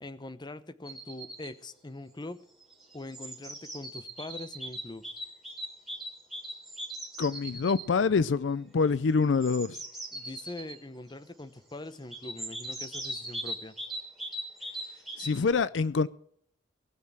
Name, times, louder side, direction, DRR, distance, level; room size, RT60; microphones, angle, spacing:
voice 1, 0.0-2.4 2.9-5.0 10.1-13.8, left 2 dB, 25° left, 0.9 m, -43 dB
sound 1, 0.8-1.5 2.6-7.9 9.2-10.8 12.1-15.5, right 1 dB, ahead, 4.1 m, -40 dB
voice 2, 7.2-9.8 15.2-16.1, left 4 dB, 70° left, 0.4 m, -26 dB
19.5 x 6.6 x 7.3 m
head